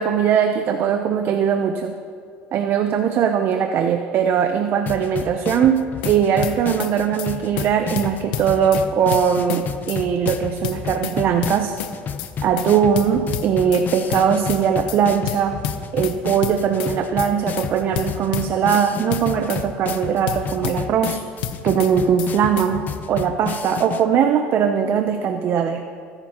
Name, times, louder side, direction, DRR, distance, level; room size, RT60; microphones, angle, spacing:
voice 1, 0.0-1.9 2.5-11.7 12.4-15.6 15.9-21.2 21.6-25.8, right 7 dB, 50° right, 7 dB, 0.7 m, -20 dB
sound 1, 4.9-24.0, left 7 dB, 40° left, 0.7 m, -31 dB
sound 2, 5.8-6.1 6.4-6.9 7.2-7.3 7.6-7.7 8.0-8.8 9.1-9.6 9.9-10.0 10.3-11.2 11.4-11.9 12.2-12.3 12.6-12.7 13.0-13.8 14.1-14.6 14.9-15.0 15.3-16.1 16.4-16.9 17.2-17.3 17.6-17.7 18.0-18.8 19.1-19.6 19.9-20.0 20.3-21.1 21.4-21.9 22.2-22.3 22.6-22.7, left 11 dB, 90° left, 0.8 m, -29 dB
19.5 x 11.0 x 3.0 m, 2.3 s
supercardioid pair, 110°, 5 cm